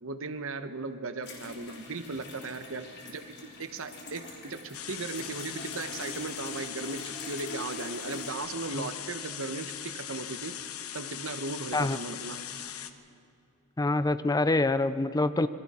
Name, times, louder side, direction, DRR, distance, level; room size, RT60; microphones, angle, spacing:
voice 1, 0.0-10.6 10.9-12.4, right 3 dB, 65° right, 9 dB, 1.1 m, -37 dB
sound 1, 1.2-8.3, left 2 dB, 55° left, 3.7 m, -45 dB
sound 2, 4.7-12.9, left 10 dB, 80° left, 1.0 m, -40 dB
voice 2, 13.8-15.5, left 2 dB, 15° left, 13 dB, 0.5 m, -26 dB
26.5 x 22.5 x 4.4 m, 2.6 s
head